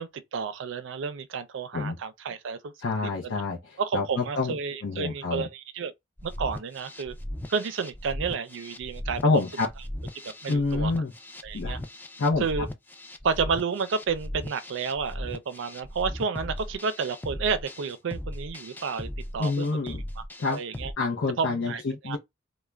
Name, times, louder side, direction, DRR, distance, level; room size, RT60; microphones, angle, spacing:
voice 1, 0.0-2.7 3.0-3.3 3.8-5.9 6.2-7.1 7.5-9.4 10.4-10.9 11.4-11.8 12.4-12.7 13.2-19.1 19.3-20.0 20.5-20.9 21.4-22.2, right 5 dB, 65° right, 0.4 m, -31 dB
voice 2, 2.8-4.5 4.8-5.5 9.2-9.7 10.5-11.1 11.5-11.8 12.2-12.5 19.4-20.0 20.4-20.6 21.0-22.2, left 3 dB, 70° left, 0.6 m, -27 dB
sound 1, 6.2-20.9, left 1 dB, 10° left, 0.3 m, -38 dB
2.4 x 2.1 x 3.2 m
head